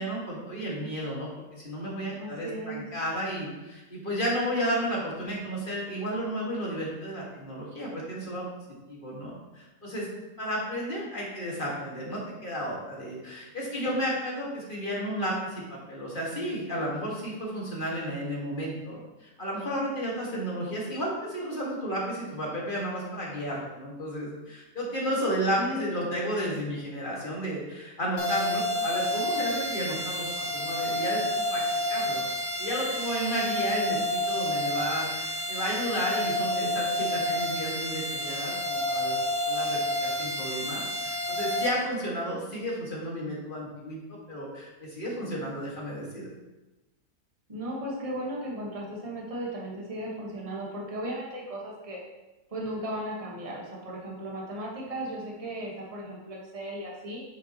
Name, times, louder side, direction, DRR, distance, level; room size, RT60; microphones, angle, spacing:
voice 1, 0.0-8.4 8.9-10.1 10.4-31.6 31.9-32.2 32.6-39.2 39.5-46.3, equal, 30° left, -4 dB, 1.9 m, -32 dB
voice 2, 2.2-2.9 25.5-25.8 47.5-52.0 52.5-57.2, right 1 dB, 20° right, -3 dB, 1.4 m, -36 dB
sound 1, 28.2-41.7, left 1 dB, 60° left, 1.9 m, -29 dB
9.0 x 5.8 x 3.0 m, 1.1 s
omnidirectional pair, 1.8 m